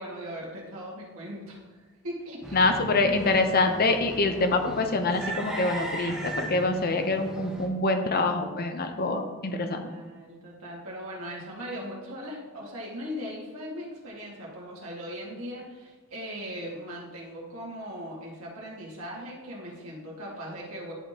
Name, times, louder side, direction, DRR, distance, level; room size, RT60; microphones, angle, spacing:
voice 1, 0.0-3.2 6.3-6.8 9.5-20.9, equal, 85° right, -5 dB, 2.0 m, -39 dB
sound 1, 2.4-7.7, right 1 dB, 5° right, 1.0 m, -37 dB
voice 2, 2.5-9.9, left 3 dB, 45° left, 6 dB, 0.7 m, -25 dB
11.0 x 5.0 x 2.9 m, 1.3 s
head